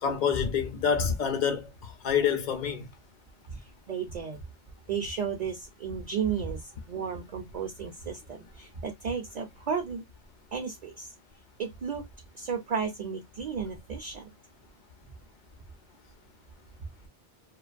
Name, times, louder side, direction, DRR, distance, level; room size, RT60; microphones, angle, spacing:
voice 1, 0.0-2.9, left 7 dB, 55° left, 0.6 m, -27 dB
voice 2, 3.5-4.4 4.9-10.0 10.5-11.1 11.6-12.0 12.3-14.3, right 6 dB, 50° right, 0.6 m, -33 dB
2.4 x 2.2 x 2.4 m
omnidirectional pair, 1.1 m